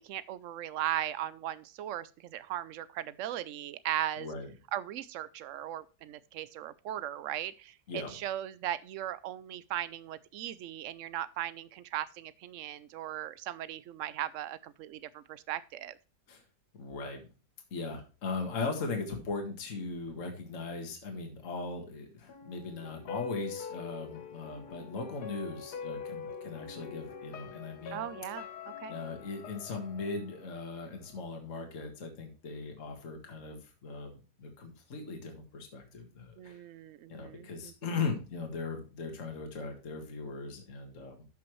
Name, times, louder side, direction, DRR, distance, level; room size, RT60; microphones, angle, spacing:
voice 1, 0.0-4.3 4.7-16.0 27.9-28.9 36.4-37.7, right 12 dB, 80° right, 0.7 m, -38 dB
voice 2, 4.2-4.5 7.9-8.2 16.3-16.4 16.7-17.3 17.7-28.1 28.9-36.6 37.1-41.2, left 4 dB, 45° left, 1.9 m, -39 dB
sound 1, 22.3-31.3 31.6-31.7, left 6 dB, 65° left, 1.6 m, -44 dB
12.5 x 5.8 x 3.1 m
omnidirectional pair, 1.9 m